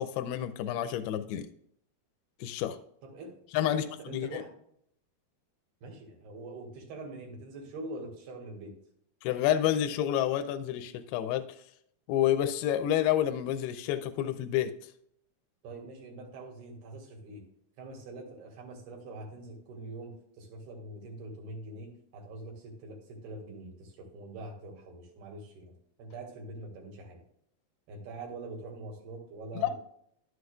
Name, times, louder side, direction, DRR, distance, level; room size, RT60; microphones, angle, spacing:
voice 1, 0.0-1.5 2.4-2.8 3.5-4.4 9.2-11.5 12.1-14.7 29.6-29.7, left 11 dB, 90° left, 8 dB, 2.5 m, -29 dB
voice 2, 3.0-3.4 3.6-4.5 5.8-8.8 15.6-17.4 17.8-25.7 26.0-27.2 27.9-29.7, right 2 dB, 80° right, 0 dB, 3.8 m, -44 dB
11.5 x 7.8 x 2.3 m, 0.70 s
omnidirectional pair, 4.4 m